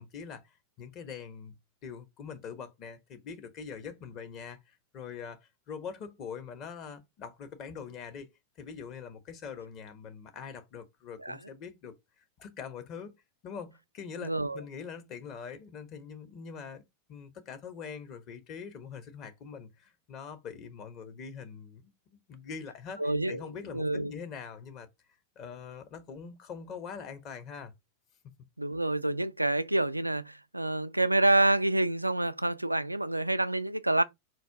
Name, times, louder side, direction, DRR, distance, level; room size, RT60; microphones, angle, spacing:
voice 1, 0.0-1.5 1.8-8.3 8.6-11.9 12.4-13.2 13.4-16.8 17.1-24.9 25.4-27.7, left 6 dB, 35° left, 1.0 m, -43 dB
voice 2, 14.2-14.6 23.0-23.4 23.7-24.1 28.6-34.0, right 1 dB, 85° right, 0.3 m, -27 dB
4.1 x 2.5 x 4.6 m
figure-of-eight pair, 90°, 0 cm